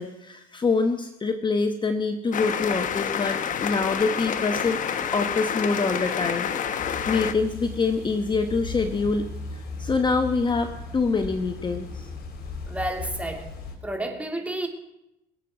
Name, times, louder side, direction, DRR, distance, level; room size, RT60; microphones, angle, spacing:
voice 1, 0.0-4.8 5.1-6.5 7.1-9.3 9.5-12.1, left 4 dB, 25° left, 6 dB, 1.1 m, -25 dB
sound 1, 2.3-7.3, left 8 dB, 50° left, 1.1 m, -28 dB
sound 2, 2.6-12.0, right 6 dB, 80° right, 2.5 m, -49 dB
sound 3, 6.8-13.7, left 4 dB, 70° left, 3.8 m, -37 dB
voice 2, 12.6-13.5 13.8-14.7, right 1 dB, 10° right, 3 dB, 2.8 m, -30 dB
24.0 x 8.0 x 6.0 m, 0.89 s
cardioid pair, 110°, 17 cm